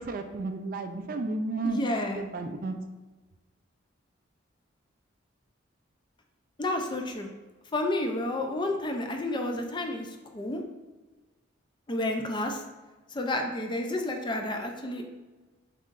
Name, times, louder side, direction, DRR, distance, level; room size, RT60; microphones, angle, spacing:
voice 1, 0.0-1.8 2.2-2.8, right 3 dB, 45° right, 6 dB, 0.4 m, -32 dB
voice 2, 1.6-2.2 6.6-7.3 7.7-10.1 10.3-10.6 11.9-12.6 13.1-15.0, left 1 dB, 25° left, 3 dB, 0.4 m, -30 dB
5.5 x 3.7 x 2.5 m, 1.2 s
head